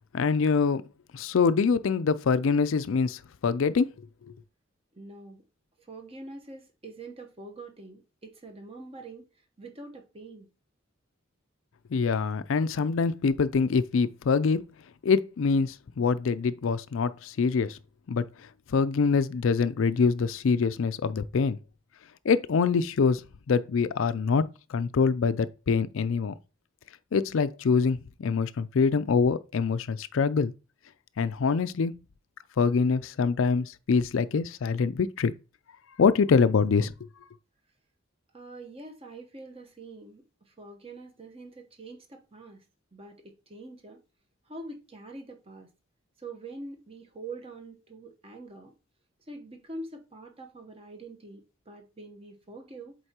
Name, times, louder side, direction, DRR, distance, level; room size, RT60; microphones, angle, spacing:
voice 1, 0.1-0.8 1.1-3.9 4.3-4.4 11.9-14.7 15.0-17.8 18.1-18.3 18.7-21.6 22.2-23.2 23.5-26.3 27.1-30.5 31.2-32.0 32.6-35.3 36.0-36.9, left 5 dB, 70° left, 0.4 m, -25 dB
voice 2, 4.9-5.4 5.8-9.3 9.6-10.5 38.3-42.6 42.9-44.0 44.5-45.7 46.2-48.7 49.3-53.0, right 2 dB, 25° right, 1.0 m, -44 dB
7.8 x 4.5 x 2.9 m
head